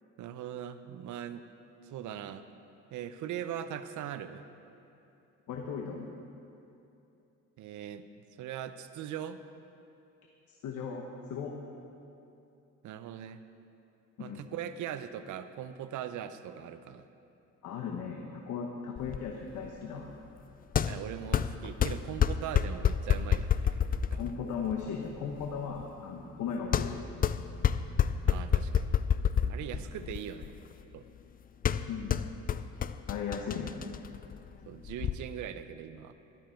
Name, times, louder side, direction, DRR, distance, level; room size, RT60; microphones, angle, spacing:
voice 1, 0.2-1.5 1.8-2.5 2.9-4.5 7.6-9.4 12.8-13.4 14.2-17.1 20.8-24.2 28.3-29.0 29.5-30.6 30.9-31.1 34.7-36.1, right 10 dB, 70° right, 11 dB, 0.7 m, -40 dB
voice 2, 5.5-6.1 10.5-11.5 14.2-14.5 17.6-20.1 24.2-26.9 29.7-29.8 31.9-32.1 33.1-33.7, left 6 dB, 70° left, 1 dB, 1.2 m, -37 dB
sound 1, 19.0-35.1, left 8 dB, 30° left, 0.4 m, -30 dB
13.0 x 12.5 x 4.5 m, 2.8 s
cardioid pair, 110°, 31 cm